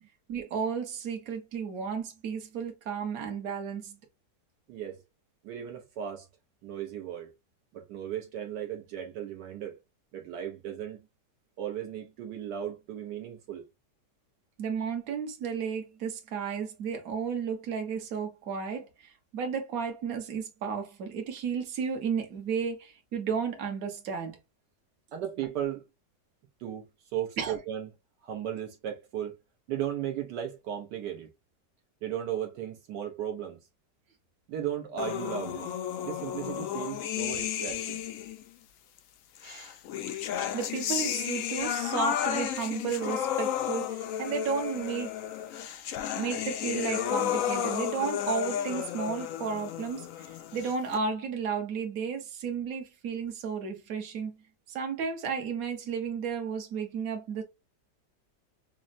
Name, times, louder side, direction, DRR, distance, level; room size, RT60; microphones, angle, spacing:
voice 1, 0.3-4.0 14.6-24.4 27.4-27.6 39.4-39.7 40.5-45.1 46.2-54.4 54.7-57.4, right 6 dB, 55° right, 1.3 m, -33 dB
voice 2, 5.4-6.3 6.6-7.3 7.7-9.8 10.1-11.0 11.6-13.6 25.1-25.9 26.6-26.8 27.1-27.9 28.2-29.4 29.7-31.3 32.0-33.6 34.5-35.8 36.0-38.1, right 10 dB, 75° right, 1.3 m, -36 dB
sound 1, 35.0-38.4 39.4-51.0, left 10 dB, 75° left, 0.7 m, -32 dB
6.1 x 2.1 x 2.5 m
omnidirectional pair, 1.9 m